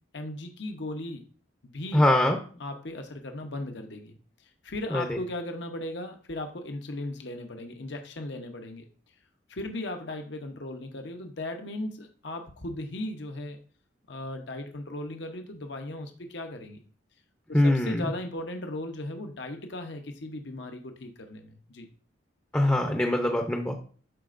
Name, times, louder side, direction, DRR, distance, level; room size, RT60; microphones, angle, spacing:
voice 1, 0.1-1.2 1.6-2.0 2.6-4.2 4.6-8.8 9.5-13.6 14.1-16.8 17.5-21.9, left 1 dB, 65° left, 5 dB, 0.8 m, -37 dB
voice 2, 1.9-2.4 4.9-5.2 17.5-18.0 22.5-23.7, left 1 dB, 10° left, 3 dB, 0.6 m, -23 dB
12.5 x 4.2 x 2.5 m, 0.42 s
head